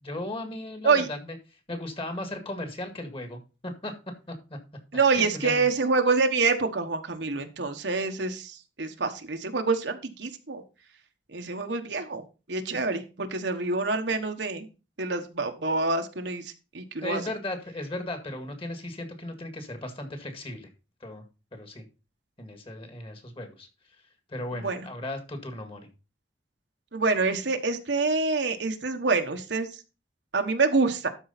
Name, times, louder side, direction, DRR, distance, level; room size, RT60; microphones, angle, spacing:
voice 1, 0.0-1.4 1.7-3.9 4.3-4.4 5.1-5.7 17.0-20.7 21.0-21.2 21.5-21.8 22.4-23.7 24.3-25.9, left 1 dB, 30° left, 6 dB, 1.9 m, -36 dB
voice 2, 4.9-10.6 11.3-12.2 12.5-14.7 15.0-17.2 24.5-24.9 26.9-29.7 30.3-31.1, right 4 dB, 75° right, 6 dB, 1.2 m, -26 dB
12.5 x 4.7 x 4.2 m, 0.31 s
head